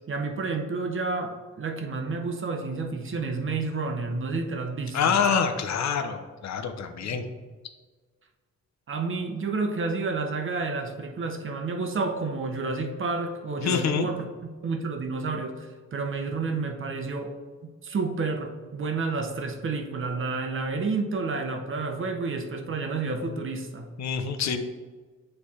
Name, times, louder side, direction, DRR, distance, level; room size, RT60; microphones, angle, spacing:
voice 1, 0.1-5.2 7.0-7.2 8.9-14.3 14.6-17.4 17.8-23.9, right 3 dB, 45° right, 5 dB, 0.8 m, -30 dB
voice 2, 4.9-7.2 13.6-14.1 24.0-24.6, left 6 dB, 65° left, 7 dB, 0.7 m, -26 dB
8.4 x 3.3 x 4.2 m, 1.4 s
cardioid pair, 105°, 29 cm